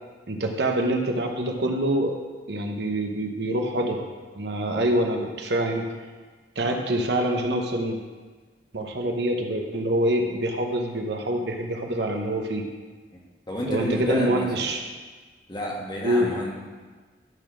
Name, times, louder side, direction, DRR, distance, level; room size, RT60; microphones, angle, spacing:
voice 1, 0.3-2.2 2.5-4.1 4.3-5.9 6.6-8.0 8.7-12.6 13.7-14.8 16.0-16.3, right 1 dB, 70° right, 3 dB, 1.0 m, -25 dB
voice 2, 13.5-14.7 15.5-16.5, equal, 25° left, -3 dB, 1.5 m, -30 dB
12.0 x 4.3 x 6.1 m, 1.4 s
head